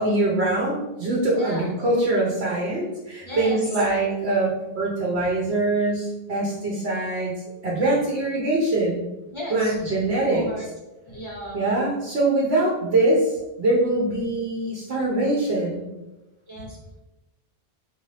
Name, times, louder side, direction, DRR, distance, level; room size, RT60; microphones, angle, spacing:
voice 1, 0.0-7.3 7.6-9.0 9.5-10.5 11.5-15.9, right 2 dB, 70° right, -4 dB, 1.0 m, -23 dB
voice 2, 3.2-3.6 5.4-5.5 9.3-9.8 10.3-10.7 11.1-11.6 16.5-17.0, equal, 30° left, -5 dB, 1.0 m, -35 dB
4.6 x 2.6 x 3.2 m, 1.0 s
omnidirectional pair, 1.1 m